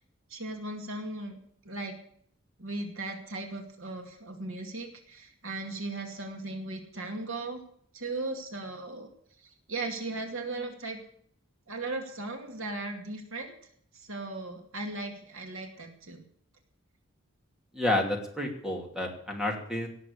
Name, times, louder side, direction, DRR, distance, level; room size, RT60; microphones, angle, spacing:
voice 1, 0.3-1.4 1.6-2.0 2.6-7.6 7.9-9.1 9.4-11.0 11.7-13.5 13.9-16.2, right 2 dB, 80° right, 3 dB, 2.4 m, -37 dB
voice 2, 17.7-19.9, left 1 dB, 5° right, 1 dB, 2.7 m, -30 dB
17.5 x 7.6 x 8.3 m, 0.63 s
head